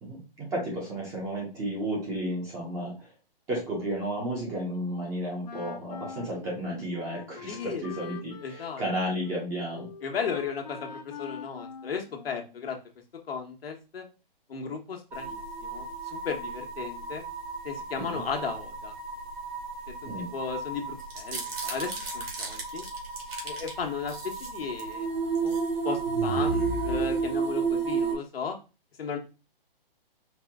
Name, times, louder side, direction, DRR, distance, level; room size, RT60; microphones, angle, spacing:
voice 1, 0.0-3.1 3.5-9.9 18.1-18.2 20.1-20.3, right 1 dB, 10° right, -4 dB, 0.7 m, -33 dB
Wind instrument woodwind instrument, 5.4-12.7, left 6 dB, 45° left, 0.6 m, -44 dB
voice 2, 7.5-7.8 8.4-8.8 10.0-12.8 13.3-14.0 14.5-17.2 17.6-18.9 20.0-22.8 23.4-25.1 25.4-25.6 25.8-28.6 29.0-29.2, left 6 dB, 80° left, 2 dB, 1.3 m, -35 dB
sound 1, 15.1-28.2, right 5 dB, 55° right, 2.2 m, -33 dB
sound 2, 21.0-23.7 24.1-24.9 25.3-25.7 26.0-27.6, right 1 dB, 85° right, 1.9 m, -36 dB
4.7 x 2.2 x 3.6 m, 0.31 s
hypercardioid pair, 160°, 29 cm